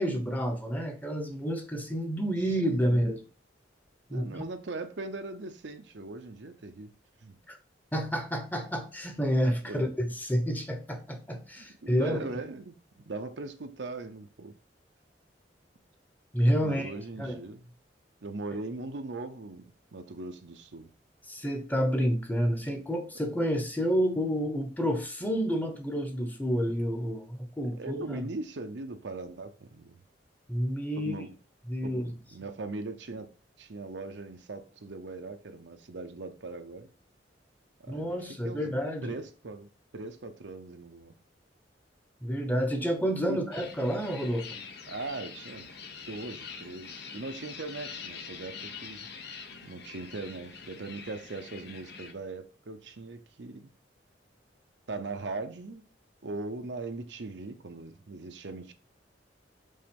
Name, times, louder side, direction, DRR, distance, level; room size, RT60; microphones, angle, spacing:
voice 1, 0.0-3.2 4.1-4.3 7.5-7.6 7.9-12.2 16.3-16.9 17.2-17.4 21.3-28.2 30.5-31.1 31.7-32.1 37.9-39.2 42.2-44.6, equal, 10° left, 0.9 m, -29 dB
voice 2, 2.9-3.2 4.1-6.9 7.2-7.4 9.6-9.8 11.6-14.5 16.6-17.7 18.2-20.9 23.2-23.3 27.8-30.0 31.0-31.4 31.8-33.3 33.6-36.9 37.8-38.8 39.0-41.1 43.3-43.4 44.9-45.7 46.1-49.1 49.6-53.7 54.9-55.8 56.2-58.7, right 3 dB, 75° right, 0.8 m, -40 dB
sound 1, 43.5-52.1, left 5 dB, 65° left, 0.9 m, -44 dB
5.5 x 3.8 x 5.3 m
head